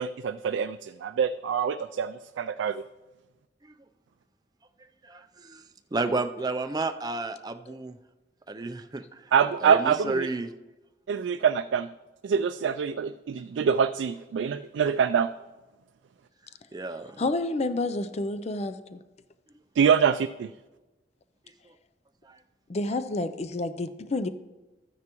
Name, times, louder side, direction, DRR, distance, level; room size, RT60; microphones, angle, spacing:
voice 1, 0.0-2.8 9.3-10.3 11.1-11.9 12.2-15.3 19.8-20.5, right 7 dB, 90° right, 0.3 m, -25 dB
voice 2, 5.0-5.6 5.9-8.0 8.5-9.0 9.6-10.5 16.7-17.2 22.3-22.4, right 3 dB, 20° right, 0.5 m, -31 dB
voice 3, 17.2-19.0 22.7-24.3, left 2 dB, 35° left, 0.4 m, -29 dB
13.0 x 9.5 x 3.0 m
head